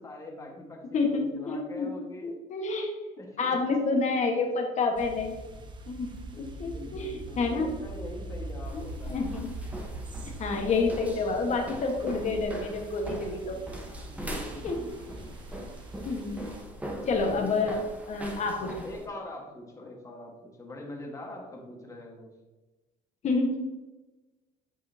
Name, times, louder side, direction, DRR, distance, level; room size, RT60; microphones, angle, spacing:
voice 1, 0.0-2.3 3.2-3.6 6.3-9.1 14.1-15.2 16.8-17.6 18.6-22.3, left 1 dB, 20° left, -1 dB, 1.6 m, -43 dB
voice 2, 0.9-1.9 2.2-3.0 3.4-5.3 5.9-6.1 6.4-7.7 8.7-9.5 10.4-13.6 14.6-14.8 16.0-16.5 17.1-17.8 18.1-18.7 23.2-23.6, left 3 dB, 45° left, 2 dB, 1.5 m, -28 dB
sound 1, 5.0-16.6, right 1 dB, 30° right, 0.9 m, -43 dB
sound 2, 8.7-19.1, right 1 dB, 10° right, 1.1 m, -41 dB
8.2 x 5.5 x 2.9 m, 1.1 s
cardioid pair, 120°, 17 cm